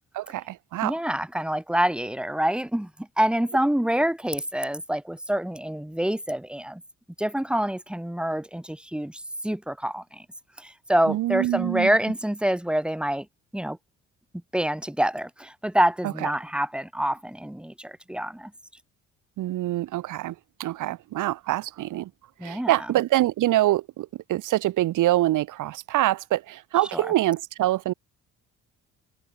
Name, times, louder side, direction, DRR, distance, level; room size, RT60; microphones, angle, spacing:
voice 1, 0.1-0.9 11.1-12.0 16.0-16.3 19.4-22.1 22.4-27.9, right 15 dB, 85° right, 4.9 m, -25 dB
voice 2, 0.8-2.9 3.2-6.8 7.2-10.2 10.6-13.3 13.5-13.8 14.5-18.5 22.4-22.7 26.9-27.0, right 1 dB, 5° right, 1.9 m, -26 dB
cardioid pair, 90°, 30 cm